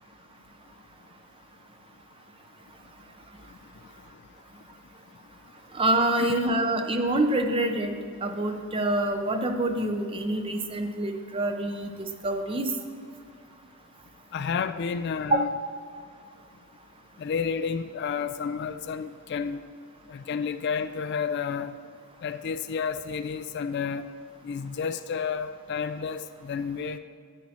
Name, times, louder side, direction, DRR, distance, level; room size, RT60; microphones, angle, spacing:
voice 1, 5.7-7.9 8.2-11.9 12.2-12.7 15.3-15.4, right 1 dB, 25° right, 6 dB, 0.5 m, -26 dB
voice 2, 14.3-15.5 17.2-19.6 20.1-21.8 22.2-24.1 24.4-27.0, left 6 dB, 50° left, 11 dB, 0.3 m, -31 dB
10.0 x 8.6 x 4.2 m, 2.2 s
head